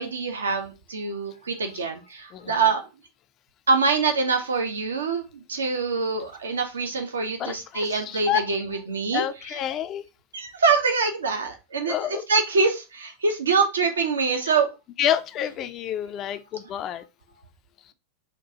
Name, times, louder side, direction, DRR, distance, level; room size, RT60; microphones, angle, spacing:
voice 1, 0.0-2.8 3.7-9.6 10.3-14.7, right 4 dB, 70° right, 0.6 m, -25 dB
voice 2, 7.4-8.4 9.1-10.0 11.8-12.3 15.0-17.0, left 10 dB, 35° left, 0.4 m, -28 dB
4.4 x 2.3 x 2.7 m
figure-of-eight pair, 90°, 0 cm